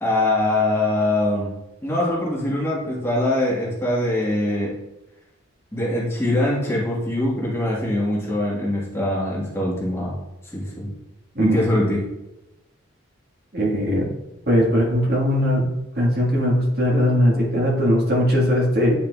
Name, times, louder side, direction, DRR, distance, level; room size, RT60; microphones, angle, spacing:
voice 1, 0.0-1.5 1.8-4.7 5.7-10.2 10.4-10.9 11.4-12.0, left 1 dB, 15° left, -5 dB, 1.3 m, -23 dB
voice 2, 13.5-14.1 14.5-15.7 15.9-18.9, equal, 50° right, -3 dB, 1.6 m, -19 dB
9.0 x 4.6 x 2.3 m, 0.96 s
head